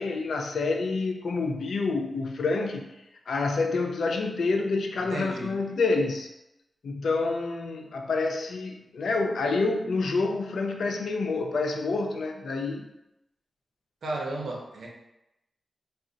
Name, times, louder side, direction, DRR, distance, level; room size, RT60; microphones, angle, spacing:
voice 1, 0.0-2.9 3.3-6.3 6.8-12.9, left 3 dB, 85° left, 3 dB, 0.3 m, -28 dB
voice 2, 5.0-5.6 14.0-14.9, right 2 dB, 80° right, -1 dB, 0.5 m, -34 dB
2.4 x 2.0 x 3.7 m, 0.90 s
wide cardioid pair, 140°, 0 cm